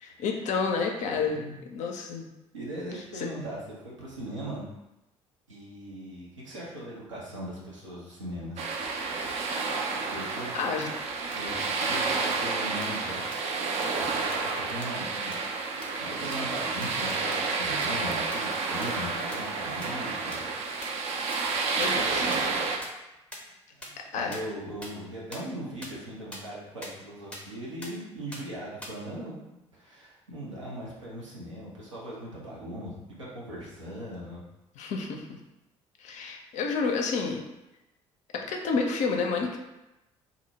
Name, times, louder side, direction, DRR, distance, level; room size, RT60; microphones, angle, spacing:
voice 1, 0.0-1.4 1.7-2.3 3.1-3.3 10.5-10.9 21.8-22.3 24.1-24.4 34.8-35.3 36.0-37.4 38.3-39.6, left 4 dB, 50° left, 2 dB, 0.4 m, -29 dB
voice 2, 1.1-1.6 2.5-4.6 5.5-8.6 10.1-10.9 11.2-13.4 14.0-15.4 16.0-20.5 23.7-29.4 29.7-34.4, right 1 dB, 85° right, -5 dB, 0.6 m, -39 dB
sound 1, 8.6-22.8, right 4 dB, 45° right, 0.4 m, -30 dB
sound 2, 10.8-10.9 11.3-11.4 11.8-11.9 12.3-12.4 12.8-12.9 13.3-13.4 13.8-13.9 14.3-14.4 14.8-14.9 15.3-15.4 15.8-15.9 16.3-16.4 16.8-16.9 17.3-17.4 17.8-17.9 18.3-18.4 18.8-18.9 19.3-19.4 19.8-19.9 20.3-20.4 20.8-20.9 21.3-21.4 21.8-21.9 22.3-22.4 22.8-22.9 23.3-23.4 23.8-23.9 24.3-24.4 24.8-24.9 25.3-25.4 25.8-25.9 26.3-26.4 26.8-26.9 27.3-27.4 27.8-27.9 28.3-28.4 28.8-28.9, left 1 dB, 5° left, 0.6 m, -40 dB
2.5 x 2.0 x 2.8 m, 0.96 s
figure-of-eight pair, 50°, 16 cm